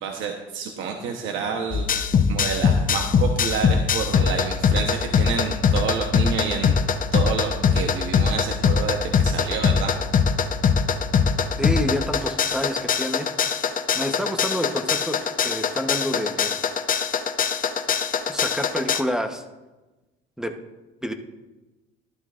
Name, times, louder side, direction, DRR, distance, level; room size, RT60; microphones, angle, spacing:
voice 1, 0.0-1.9 2.3-6.7 7.1-10.3, right 6 dB, 70° right, 3 dB, 1.0 m, -29 dB
sound 1, 1.7-19.0, left 6 dB, 40° left, 0.7 m, -22 dB
voice 2, 11.6-13.3 13.9-16.6 18.3-19.4 20.4-20.5 21.0-21.1, equal, 5° right, 6 dB, 0.9 m, -28 dB
12.0 x 12.0 x 2.5 m, 1.1 s
cardioid pair, 90°, 21 cm